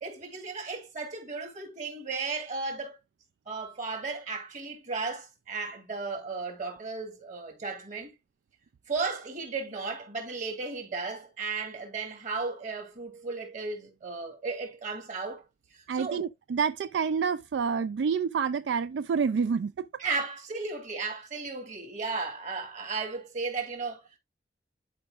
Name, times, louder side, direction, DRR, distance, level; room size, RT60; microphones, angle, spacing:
voice 1, 0.0-3.0 3.5-8.1 8.9-15.4 15.7-16.2 20.0-24.0, right 4 dB, 45° right, 2.8 m, -35 dB
voice 2, 15.9-19.9, right 6 dB, 75° right, 0.3 m, -28 dB
11.5 x 4.9 x 2.4 m
head